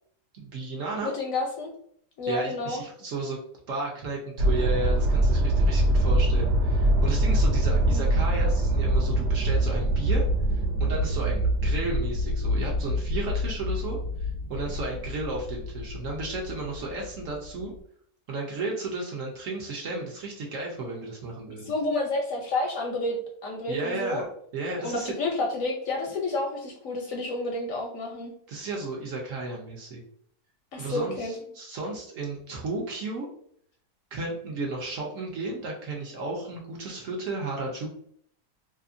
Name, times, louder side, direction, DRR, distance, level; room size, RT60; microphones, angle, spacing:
voice 1, 0.3-1.1 2.3-3.4 3.7-10.2 10.5-17.7 18.3-21.7 23.7-24.3 24.5-25.1 28.5-30.0 30.8-33.3 34.1-37.9, right 3 dB, 65° right, -2 dB, 0.9 m, -33 dB
voice 2, 1.0-1.7 2.2-2.8 7.7-8.1 21.6-24.2 24.8-28.3 30.7-31.3, left 2 dB, 70° left, 0 dB, 0.8 m, -30 dB
sound 1, 4.4-17.1 17.6-17.7, right 1 dB, 80° right, 1.1 m, -24 dB
2.8 x 2.5 x 2.5 m, 0.64 s
omnidirectional pair, 1.7 m